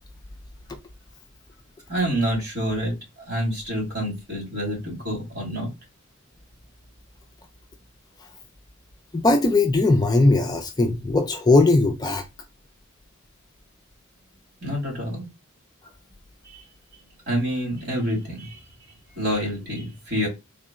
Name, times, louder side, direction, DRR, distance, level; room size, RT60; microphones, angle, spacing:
voice 1, 1.9-2.9 3.3-5.7 14.6-15.3 16.4-16.6 17.3-18.6 19.2-20.3, equal, 50° right, 2.2 m, -27 dB
voice 2, 9.1-12.2, left 2 dB, 20° left, 0.4 m, -19 dB
3.7 x 2.2 x 3.6 m
head